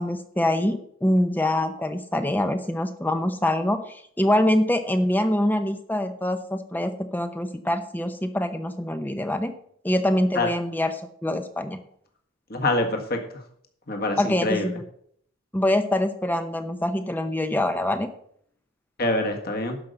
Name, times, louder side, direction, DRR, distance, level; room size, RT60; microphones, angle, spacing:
voice 1, 0.0-9.5 9.8-11.8 14.2-14.9 15.5-18.1, left 1 dB, 10° left, 9 dB, 0.7 m, -24 dB
voice 2, 12.5-13.2 13.9-14.6 19.0-19.8, left 2 dB, 45° left, 3 dB, 1.7 m, -25 dB
12.0 x 5.5 x 6.6 m, 0.66 s
head